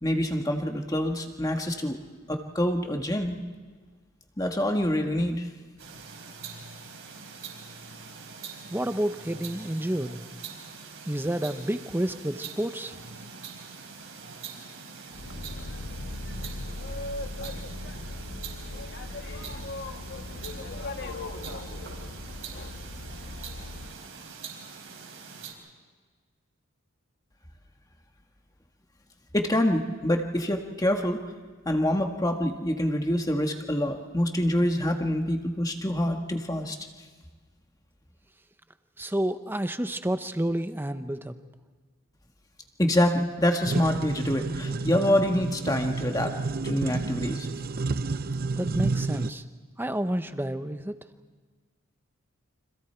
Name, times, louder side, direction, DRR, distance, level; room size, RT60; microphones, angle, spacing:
voice 1, 0.0-2.0 2.3-3.4 4.4-5.5 29.3-31.2 31.7-36.8 42.8-46.3 46.6-47.5, left 1 dB, 15° left, 4 dB, 1.6 m, -26 dB
sound 1, 5.8-25.5, right 5 dB, 70° right, 4.7 m, -43 dB
voice 2, 8.7-10.2 11.1-13.0 39.0-41.3 48.6-49.4 49.8-51.0, right 1 dB, 10° right, 9 dB, 0.8 m, -29 dB
Boat Water vehicle, 15.1-23.9, left 2 dB, 55° left, 1.3 m, -38 dB
sound 2, 43.6-49.3, right 3 dB, 45° right, 0.6 m, -30 dB
30.0 x 26.0 x 4.5 m, 1.5 s
head